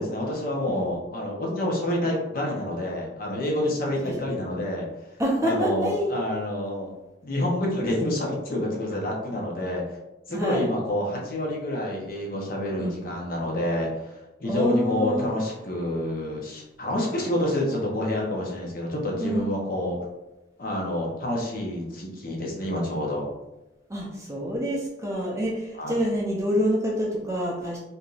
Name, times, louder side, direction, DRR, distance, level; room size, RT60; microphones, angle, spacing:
voice 1, 0.0-4.9 5.4-6.9 7.2-9.8 10.3-13.9 14.4-20.0 20.6-23.3 25.8-26.0, left 1 dB, 50° left, -2 dB, 0.8 m, -28 dB
voice 2, 5.2-6.1 10.3-10.7 12.8-12.9 14.4-15.3 19.2-19.5 23.9-27.8, equal, 15° right, -3 dB, 0.5 m, -27 dB
3.4 x 2.7 x 2.4 m, 0.99 s
head